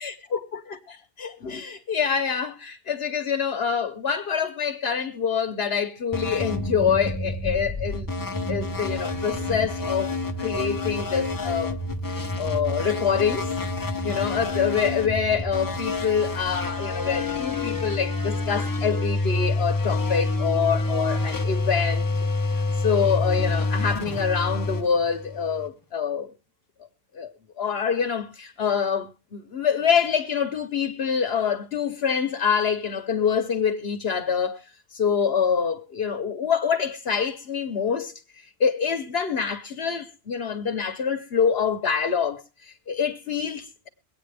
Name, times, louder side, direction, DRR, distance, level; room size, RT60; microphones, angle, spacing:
voice 1, 0.7-8.1 8.5-11.7 12.4-13.5 13.8-22.1 22.4-22.5 22.8-26.3 27.1-27.3 27.6-34.6 34.9-38.1 38.6-43.9, left 6 dB, 50° left, 1.2 m, -26 dB
sound 1, 6.1-25.7, left 2 dB, 20° left, 0.7 m, -28 dB
23.0 x 8.9 x 3.4 m
omnidirectional pair, 1.4 m